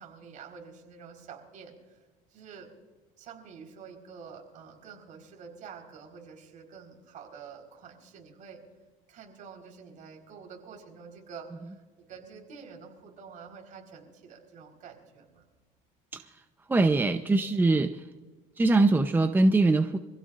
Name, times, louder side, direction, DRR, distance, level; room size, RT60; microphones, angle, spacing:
voice 1, 0.0-1.7 2.3-2.7 3.2-8.6 9.1-11.8 12.1-15.4, right 6 dB, 50° right, 2 dB, 4.4 m, -48 dB
voice 2, 16.7-18.0 18.6-20.0, right 2 dB, 10° right, 7 dB, 0.7 m, -22 dB
26.0 x 16.0 x 2.5 m, 1.3 s
cardioid pair, 115°, 16 cm